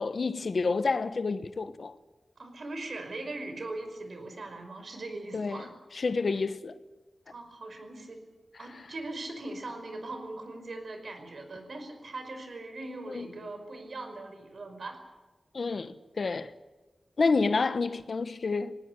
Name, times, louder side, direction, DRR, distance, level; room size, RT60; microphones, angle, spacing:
voice 1, 0.0-2.0 5.3-5.7 5.9-6.8 13.1-13.3 15.5-16.5 17.2-18.8, left 4 dB, 60° left, 1.1 m, -29 dB
voice 2, 2.4-5.7 7.3-8.2 8.6-15.0, right 2 dB, 65° right, 5.2 m, -40 dB
20.0 x 18.5 x 9.8 m
wide cardioid pair, 100°, 0 cm